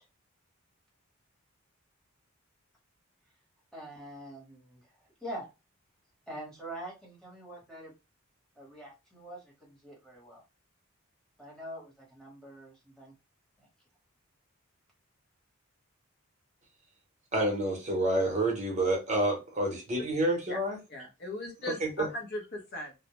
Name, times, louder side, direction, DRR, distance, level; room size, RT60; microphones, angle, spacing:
voice 1, 3.7-4.8 5.2-5.5 6.3-7.9 8.6-10.4 11.4-13.1, right 1 dB, 5° left, 1.0 m, -44 dB
voice 2, 17.3-20.8 21.8-22.1, right 1 dB, 35° right, 0.7 m, -28 dB
voice 3, 20.9-22.9, left 1 dB, 50° left, 0.6 m, -38 dB
2.1 x 2.0 x 2.9 m
head